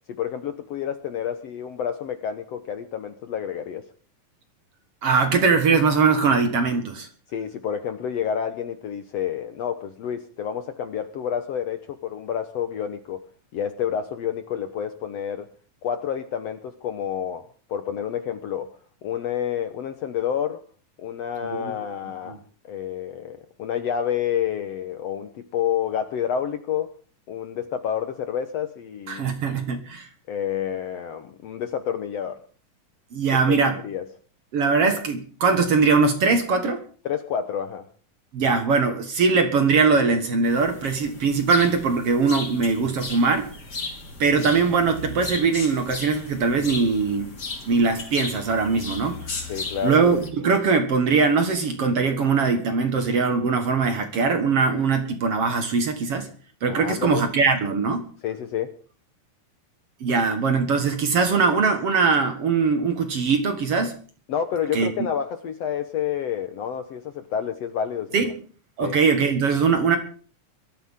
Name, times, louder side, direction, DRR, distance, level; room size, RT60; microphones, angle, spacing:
voice 1, 0.1-3.8 7.3-13.2 13.5-15.5 15.8-18.7 19.0-20.6 21.0-22.4 22.6-26.9 27.3-29.3 30.3-32.4 33.5-33.6 33.8-34.1 37.1-37.9 49.5-50.0 56.7-57.2 58.2-58.7 64.3-68.3 68.8-69.0, left 8 dB, 65° left, 9 dB, 1.7 m, -29 dB
voice 2, 5.0-7.1 21.5-21.7 22.3-22.4 29.1-30.1 33.1-33.8 34.5-36.8 38.3-43.5 44.2-47.3 47.7-49.2 49.8-56.3 56.6-58.0 60.0-64.0 64.7-64.9 68.1-68.3 68.8-70.0, right 4 dB, 50° right, 7 dB, 2.1 m, -21 dB
sound 1, 40.4-50.3, left 3 dB, 30° left, 3.1 m, -36 dB
22.0 x 13.5 x 3.7 m, 0.41 s
omnidirectional pair, 3.9 m